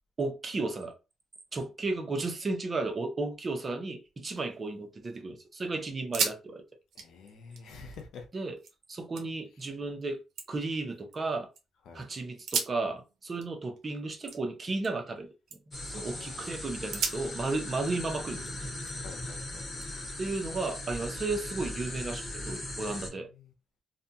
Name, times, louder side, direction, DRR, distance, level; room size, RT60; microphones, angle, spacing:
voice 1, 0.2-0.9 1.5-6.6 8.3-8.6 8.9-10.2 10.5-11.5 11.9-15.3 15.8-18.5 20.2-23.3, right 3 dB, 35° right, 0.7 m, -34 dB
sound 1, 4.1-5.1 5.5-5.6 6.0-6.4 6.7-8.7 9.1-9.7 10.1-11.6 12.3-15.2 15.5-15.9 16.3-16.4 16.9-19.2 19.8-21.0, right 5 dB, 70° right, 0.7 m, -38 dB
voice 2, 6.9-8.3 11.9-12.0 15.9-16.7 19.0-19.6 23.2-23.5, left 4 dB, 80° left, 0.7 m, -48 dB
sound 2, 15.7-23.1, left 1 dB, 25° left, 1.1 m, -39 dB
2.6 x 2.2 x 2.7 m
cardioid pair, 90°, 0 cm